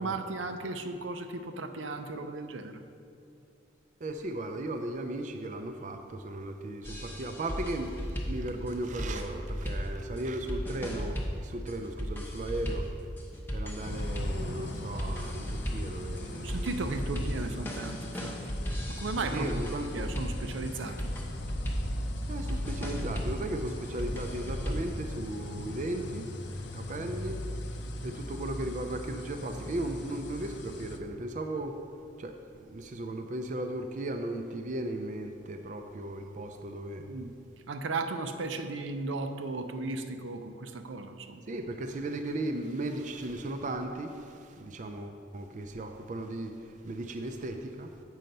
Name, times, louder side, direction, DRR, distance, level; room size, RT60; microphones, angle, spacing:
voice 1, 0.0-2.8 16.4-18.4 18.9-21.1 37.0-37.3 37.7-41.4, right 3 dB, 85° right, 7 dB, 0.6 m, -36 dB
voice 2, 4.0-12.9 13.5-16.9 17.4-17.6 19.3-20.1 22.3-26.3 26.7-27.4 28.0-31.8 32.2-37.1 41.5-47.9, right 1 dB, 40° right, 5 dB, 0.4 m, -36 dB
sound 1, 6.8-25.0, equal, 10° left, 0.7 m, -36 dB
sound 2, 13.8-31.0, left 1 dB, 65° left, 0.6 m, -39 dB
7.7 x 5.6 x 5.3 m, 2.5 s
head